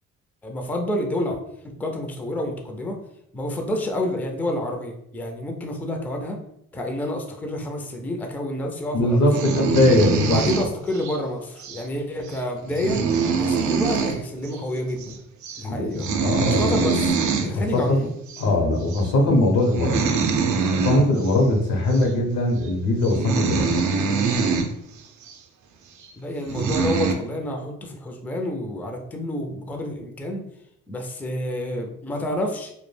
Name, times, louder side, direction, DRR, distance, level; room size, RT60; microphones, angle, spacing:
voice 1, 0.4-1.4 1.6-3.0 3.3-6.4 6.7-9.6 10.3-13.0 13.3-15.2 15.6-16.0 16.4-17.1 17.4-18.1 26.2-30.4 30.9-32.7, left 1 dB, 5° left, 3 dB, 0.3 m, -29 dB
voice 2, 8.9-10.4 15.6-16.9 17.5-18.1 18.4-20.0 20.7-23.7, left 1 dB, 75° left, 2 dB, 0.7 m, -21 dB
sound 1, 9.3-11.2 11.6-11.8 12.3-12.4 12.6-14.2 14.4-14.6 14.9-15.2 15.4-15.6 16.0-17.5 18.3-18.4 18.9-19.1 19.6-21.4 21.9-22.1 22.7-22.8 23.0-24.7 25.2-25.3 26.0-26.1 26.5-27.1, right 5 dB, 70° right, 0.5 m, -24 dB
2.1 x 2.1 x 3.1 m, 0.75 s
cardioid pair, 90°, 30 cm